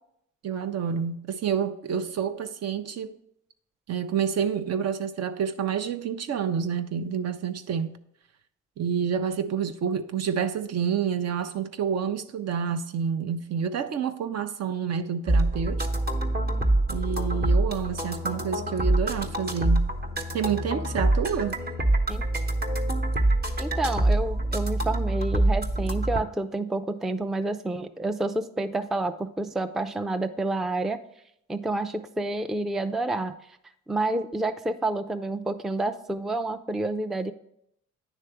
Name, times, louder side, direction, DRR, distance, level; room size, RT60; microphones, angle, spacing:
voice 1, 0.4-3.2 3.9-8.0 8.8-15.9 16.9-19.9 20.3-21.6, right 7 dB, 55° right, 0.6 m, -28 dB
sound 1, 15.3-26.2, right 1 dB, 35° right, 1.0 m, -25 dB
voice 2, 23.6-31.0 31.5-33.3 33.9-37.3, right 2 dB, ahead, 0.3 m, -29 dB
9.7 x 3.3 x 4.8 m
supercardioid pair, 65°, 30 cm